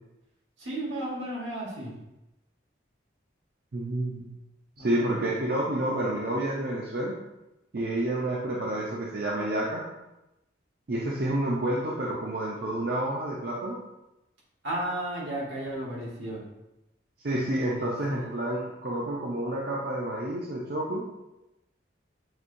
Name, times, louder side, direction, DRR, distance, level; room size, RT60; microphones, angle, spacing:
voice 1, 0.6-1.9 4.8-5.3 14.6-16.4 17.8-18.3, right 1 dB, 80° right, -4 dB, 1.4 m, -34 dB
voice 2, 3.7-4.3 4.8-7.2 7.7-9.8 10.9-13.8 17.2-21.0, right 1 dB, 55° right, -4 dB, 0.5 m, -29 dB
5.9 x 2.7 x 2.6 m, 0.94 s
head